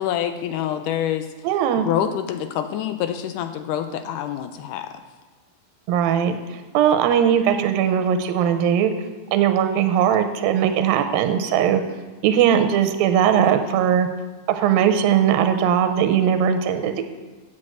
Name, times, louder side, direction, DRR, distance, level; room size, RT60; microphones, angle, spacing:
voice 1, 0.0-1.3 1.9-5.0, left 10 dB, 85° left, 9 dB, 1.9 m, -26 dB
voice 2, 1.4-1.9 5.9-6.4 6.7-8.9 9.3-11.8 12.2-14.1 14.6-17.1, right 9 dB, 90° right, 8 dB, 2.5 m, -19 dB
7.7 x 7.6 x 7.8 m, 1.3 s
omnidirectional pair, 4.1 m